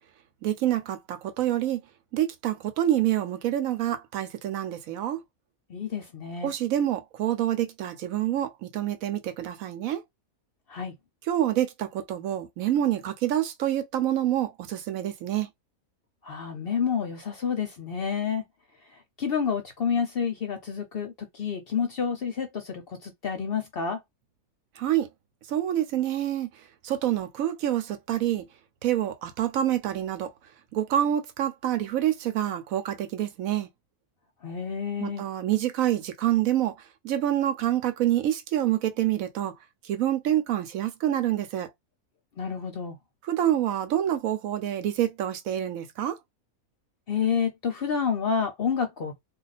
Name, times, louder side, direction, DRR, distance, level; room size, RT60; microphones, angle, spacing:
voice 1, 0.4-1.8 2.1-5.2 6.4-10.0 11.3-15.5 24.8-25.1 25.5-26.5 26.8-28.5 28.8-30.3 30.7-33.7 35.0-36.8 37.0-39.5 39.8-41.7 43.3-46.2, right 12 dB, 75° right, 1.0 m, -27 dB
voice 2, 5.7-6.5 10.7-10.9 16.2-18.4 18.9-24.0 34.4-35.3 42.4-43.0 47.1-49.2, left 6 dB, 55° left, 0.7 m, -29 dB
2.4 x 2.4 x 4.0 m
omnidirectional pair, 1.5 m